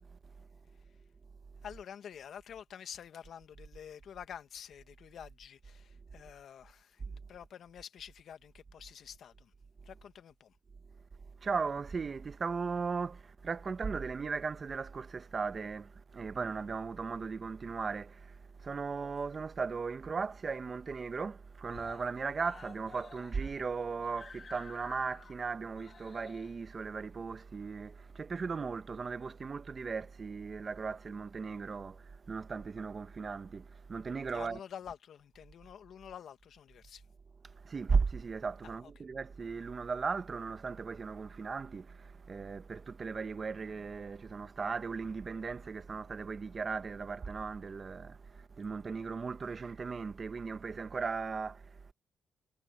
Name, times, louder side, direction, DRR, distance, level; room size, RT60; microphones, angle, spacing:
voice 1, 1.6-9.5 9.8-10.6 34.3-37.1 38.6-38.9, left 8 dB, 65° left, 1.7 m, -49 dB
voice 2, 11.4-34.6 37.4-51.9, right 5 dB, 35° right, 1.2 m, -37 dB
Screaming, 18.7-19.7 20.0-20.1 20.4-20.5 20.8-21.3 21.6-28.4 29.3-29.4, left 5 dB, 40° left, 1.6 m, -54 dB
cardioid pair, 90°, 0 cm